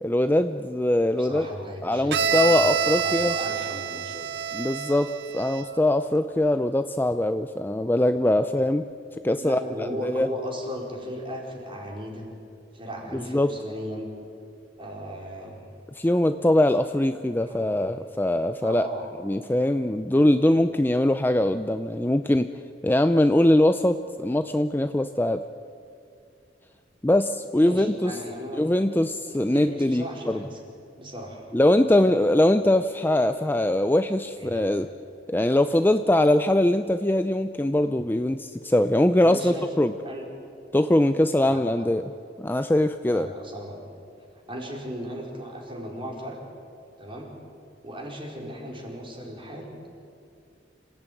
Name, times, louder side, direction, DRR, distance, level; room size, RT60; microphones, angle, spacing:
voice 1, 0.0-1.5 1.8-3.4 4.5-8.9 9.2-10.3 13.1-13.5 16.0-18.9 19.2-22.5 22.8-25.4 27.0-28.2 28.5-30.4 31.5-34.9 35.3-39.9 40.7-42.1 42.4-43.3, left 1 dB, 10° left, 9 dB, 0.5 m, -22 dB
voice 2, 1.1-4.5 9.4-12.3 12.7-14.1 14.8-15.7 17.3-17.9 18.6-19.1 27.6-28.6 28.9-29.0 29.2-30.6 31.0-31.5 32.0-32.1 34.4-34.7 39.2-39.7 40.0-40.3 41.4-41.9 43.0-43.9 44.5-46.4 47.0-47.3 47.8-49.9, equal, 30° right, -1 dB, 4.6 m, -37 dB
Bowed string instrument, 2.1-5.8, right 8 dB, 65° right, 0.7 m, -27 dB
27.0 x 16.0 x 9.3 m, 2.4 s
head